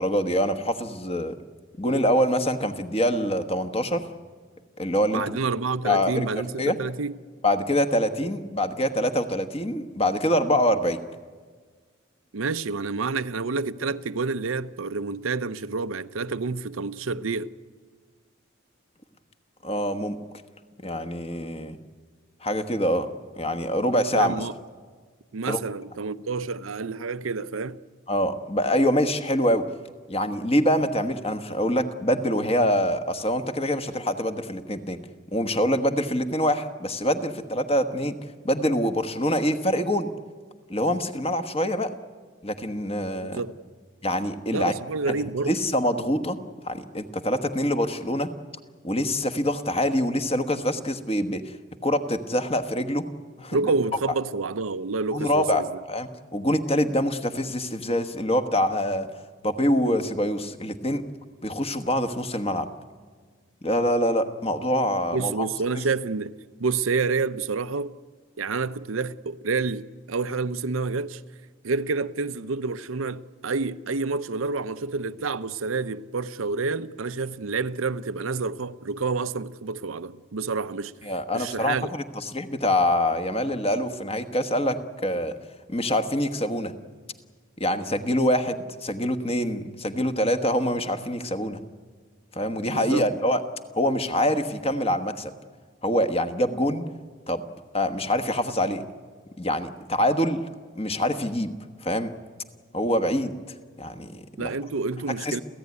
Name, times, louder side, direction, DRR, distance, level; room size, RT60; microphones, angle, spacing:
voice 1, 0.0-1.4 1.8-4.1 4.8-5.4 5.8-6.3 6.6-6.8 7.4-11.0 19.6-20.2 20.8-21.8 22.4-23.1 23.3-24.4 25.5-25.6 28.1-29.7 30.1-35.0 35.3-38.2 38.4-40.1 40.7-41.9 42.4-43.4 44.0-44.7 45.1-45.2 45.4-46.4 46.6-48.3 48.8-51.4 51.8-53.1 53.4-53.6 55.1-55.6 55.9-59.1 59.4-61.0 61.4-62.7 63.6-65.5 81.0-85.3 85.7-86.7 87.6-91.6 92.3-93.4 93.7-95.3 95.8-96.8 97.3-97.4 97.7-98.8 99.4-100.4 100.7-101.5 101.8-102.1 102.7-103.4 103.8-104.5 105.2-105.4, equal, 30° left, 1.3 m, -25 dB
voice 2, 5.1-7.2 8.2-8.3 12.3-17.5 24.1-24.5 25.3-27.8 43.3-43.6 44.5-45.6 53.5-55.7 65.1-66.3 66.6-68.0 68.4-71.2 71.6-80.9 81.3-81.9 92.7-93.0 104.4-105.4, right 4 dB, 85° right, 0.7 m, -28 dB
29.5 x 15.0 x 9.6 m
head